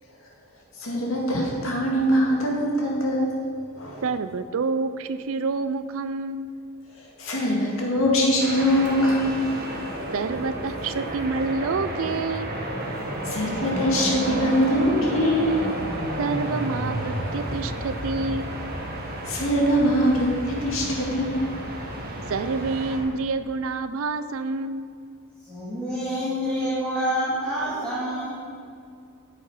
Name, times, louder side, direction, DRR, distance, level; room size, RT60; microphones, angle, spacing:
voice 1, 0.8-3.3 3.7-4.0 6.9-9.5 13.2-15.6 19.2-21.5, equal, 70° left, -2 dB, 2.1 m, -23 dB
voice 2, 4.0-6.5 10.1-12.5 16.2-18.5 22.3-24.9, right 4 dB, 70° right, 12 dB, 0.4 m, -28 dB
sound 1, 8.4-23.0, right 1 dB, 45° right, 1.5 m, -31 dB
voice 3, 25.4-28.3, equal, 5° left, -12 dB, 2.5 m, -27 dB
9.3 x 7.7 x 5.0 m, 2.4 s
head